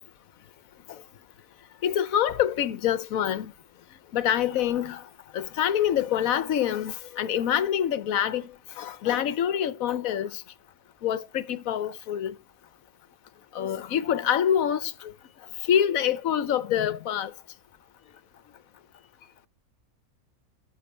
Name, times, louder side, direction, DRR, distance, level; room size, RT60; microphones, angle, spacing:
voice 1, 1.8-3.5 4.1-5.0 5.3-8.5 8.8-10.4 11.0-12.3 13.5-14.9 15.7-17.3, left 10 dB, 75° left, 1.2 m, -26 dB
12.5 x 6.0 x 4.3 m
omnidirectional pair, 1.5 m